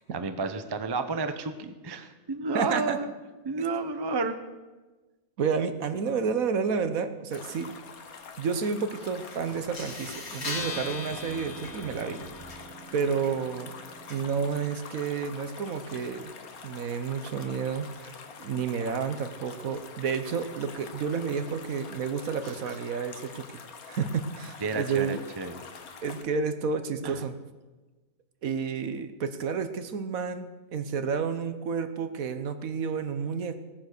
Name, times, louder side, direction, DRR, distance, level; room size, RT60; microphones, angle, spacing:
voice 1, 0.1-3.1 3.4-4.4 22.4-22.5 24.6-25.6 27.0-27.2, right 3 dB, 25° right, 9 dB, 0.6 m, -31 dB
voice 2, 2.5-3.0 5.4-7.7 8.4-12.2 12.9-13.7 14.1-16.3 16.6-23.6 23.9-25.2 26.0-27.3 28.4-33.6, right 6 dB, 65° right, 10 dB, 1.3 m, -30 dB
sound 1, 7.3-26.2, left 5 dB, 65° left, 1.6 m, -46 dB
sound 2, 9.3-9.4 9.7-14.7, left 2 dB, 90° left, 3.8 m, -40 dB
Walk footsteps, 9.5-12.8, left 1 dB, 15° left, 1.8 m, -52 dB
17.5 x 9.4 x 6.6 m, 1.2 s
omnidirectional pair, 1.7 m